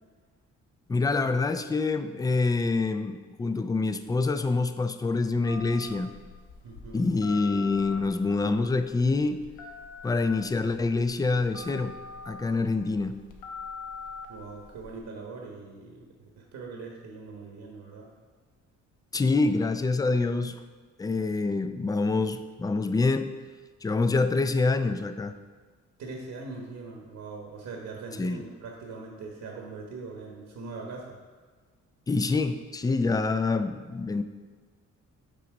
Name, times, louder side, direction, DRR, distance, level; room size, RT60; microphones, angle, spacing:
voice 1, 0.9-6.1 6.9-9.4 10.0-12.0 12.2-13.2 19.1-20.6 21.0-23.3 23.8-25.4 28.2-28.5 32.1-34.2, left 3 dB, 15° left, 10 dB, 0.3 m, -26 dB
Telephone, 5.4-15.0, left 4 dB, 85° left, 1.0 m, -44 dB
voice 2, 6.6-7.1 14.3-18.1 26.0-31.2, right 3 dB, 70° right, -1 dB, 1.2 m, -41 dB
6.1 x 4.1 x 5.9 m, 1.5 s
cardioid pair, 95°, 31 cm